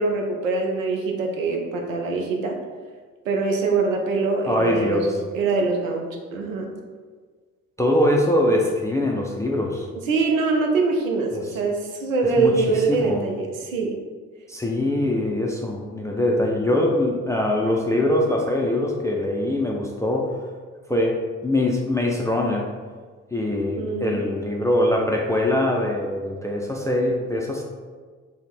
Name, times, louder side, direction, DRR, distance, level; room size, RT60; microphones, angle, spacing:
voice 1, 0.0-2.6 3.3-6.7 10.1-14.0 23.7-24.2, right 3 dB, 85° right, 1 dB, 0.5 m, -23 dB
voice 2, 4.5-5.1 7.8-9.9 11.3-11.5 12.4-13.2 14.5-20.3 20.9-22.7 23.3-27.6, left 1 dB, 10° left, -1 dB, 0.4 m, -23 dB
3.3 x 2.0 x 4.2 m, 1.5 s
figure-of-eight pair, 40°, 39 cm